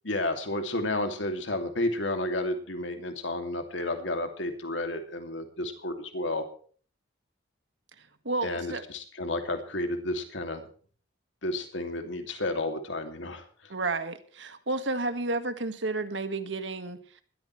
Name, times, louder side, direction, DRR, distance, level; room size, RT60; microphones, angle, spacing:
voice 1, 0.0-6.4 8.4-10.6 11.4-13.4, left 1 dB, 75° left, 6 dB, 2.6 m, -31 dB
voice 2, 8.0-8.8 13.7-17.0, right 3 dB, 70° right, 9 dB, 1.8 m, -31 dB
20.5 x 13.5 x 3.3 m, 0.43 s
head